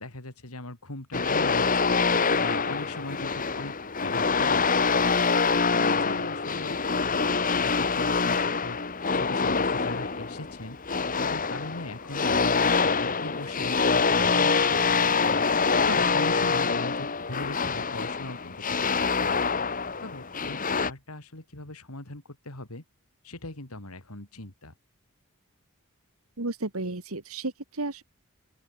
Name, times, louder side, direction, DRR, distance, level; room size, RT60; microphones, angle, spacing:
voice 1, 0.0-2.0 2.4-3.7 4.0-5.1 5.5-7.2 7.6-8.8 9.1-10.8 11.1-18.6 18.9-19.4 20.0-22.8 23.2-24.7, left 2 dB, 80° left, 3.8 m, -40 dB
sound 1, 1.1-20.9, left 4 dB, 35° left, 1.6 m, -25 dB
voice 2, 26.4-28.0, right 2 dB, 75° right, 2.0 m, -33 dB
open air
head